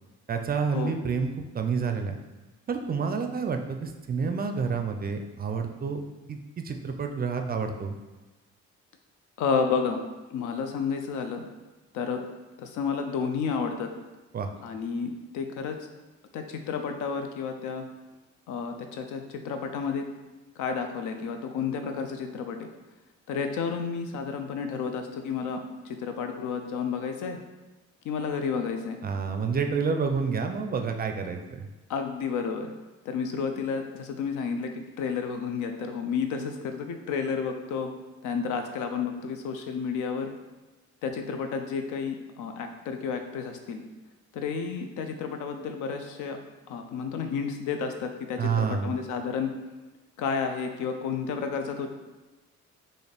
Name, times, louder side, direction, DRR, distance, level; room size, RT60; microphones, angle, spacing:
voice 1, 0.3-1.3 1.5-2.2 2.7-6.0 6.3-7.9 14.3-14.5 29.0-31.7 48.4-48.9, right 5 dB, 30° right, 5 dB, 0.4 m, -29 dB
voice 2, 9.4-10.0 10.3-11.5 11.9-12.2 12.6-13.9 14.6-15.8 16.3-17.9 18.5-20.0 20.6-22.7 23.3-25.6 25.9-27.4 28.0-29.0 31.9-32.7 33.1-37.9 38.2-40.3 41.0-43.8 44.3-46.4 46.7-49.5 50.2-51.9, left 5 dB, 80° left, 6 dB, 0.5 m, -31 dB
4.0 x 2.6 x 3.3 m, 1.2 s
cardioid pair, 90°, 30 cm